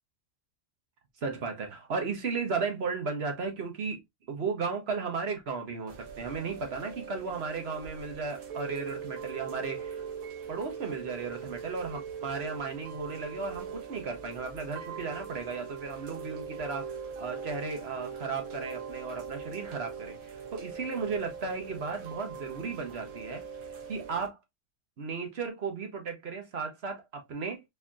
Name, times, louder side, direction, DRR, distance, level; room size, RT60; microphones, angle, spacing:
voice 1, 1.2-4.0 4.3-10.0 10.5-23.4 23.9-24.4 25.0-27.6, right 4 dB, 50° right, 1.0 m, -35 dB
Chime / Rain, 5.9-24.3, right 6 dB, 70° right, 1.3 m, -41 dB
4.4 x 2.8 x 2.3 m
omnidirectional pair, 1.5 m